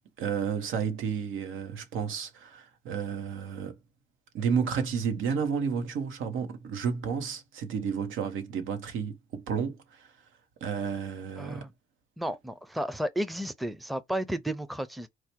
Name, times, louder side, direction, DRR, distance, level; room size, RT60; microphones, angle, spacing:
voice 1, 0.2-3.8 4.3-10.1 10.6-11.6, right 6 dB, 85° right, 1.1 m, -31 dB
voice 2, 11.4-11.7 12.2-15.1, right 1 dB, ahead, 0.5 m, -33 dB
4.7 x 2.1 x 4.4 m
cardioid pair, 90°, 20 cm